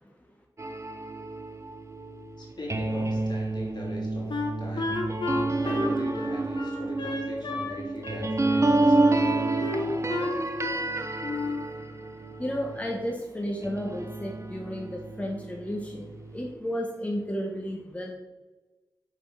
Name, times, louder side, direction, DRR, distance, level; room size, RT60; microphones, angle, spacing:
sound 1, 0.6-13.1 13.6-16.5, right 2 dB, 35° right, 0.8 m, -29 dB
voice 1, 2.4-5.0 5.6-9.6, left 1 dB, 65° left, -3 dB, 2.6 m, -41 dB
Wind instrument woodwind instrument, 4.3-7.8 8.0-9.2 9.6-10.9 11.2-11.7, left 3 dB, 80° left, 1.2 m, -32 dB
voice 2, 12.4-18.1, equal, 15° left, 0 dB, 1.2 m, -33 dB
5.6 x 5.3 x 5.5 m, 1.2 s
cardioid pair, 50°, 8 cm